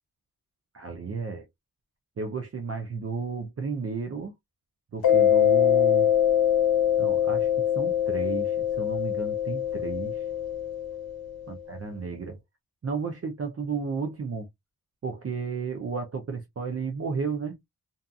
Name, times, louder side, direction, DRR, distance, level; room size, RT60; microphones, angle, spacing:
voice 1, 0.7-1.5 2.2-4.3 4.9-6.1 7.0-7.5 7.7-10.2 11.5-12.4 12.8-14.5 15.0-17.6, right 5 dB, 40° right, 0.5 m, -33 dB
Mallet percussion, 5.0-11.4, left 10 dB, 70° left, 0.8 m, -23 dB
2.7 x 2.4 x 2.3 m
wide cardioid pair, 105°, 38 cm